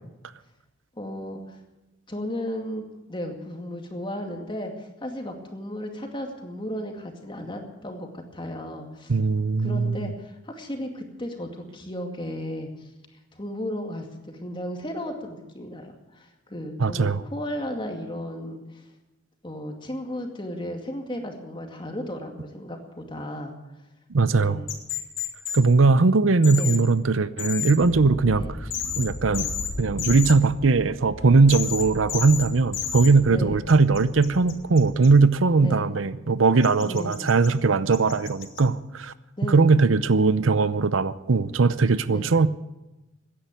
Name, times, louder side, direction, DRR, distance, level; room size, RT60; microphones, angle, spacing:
voice 1, 1.0-1.6 2.1-9.1 9.6-12.7 13.4-18.8 19.4-23.5 24.4-24.7 26.6-26.8 28.3-28.5 33.3-33.6 35.6-35.9 36.8-37.3 39.4-39.8 42.1-42.3, equal, 25° left, 3 dB, 2.3 m, -34 dB
voice 2, 9.1-10.1 16.8-17.2 24.1-24.6 25.5-28.4 29.0-29.5 29.8-39.1 39.4-42.5, right 4 dB, 85° right, 15 dB, 0.7 m, -20 dB
sound 1, 24.7-25.6 26.4-26.8 27.4-27.7 28.7-29.1 29.3-29.7 30.0-30.3 31.5-32.4 32.7-33.1 33.7-35.1 36.6-37.5 37.9-38.6, left 9 dB, 80° left, 2.5 m, -30 dB
sound 2, 27.8-35.1, left 1 dB, 50° left, 2.2 m, -39 dB
15.5 x 10.0 x 9.2 m, 1.0 s
head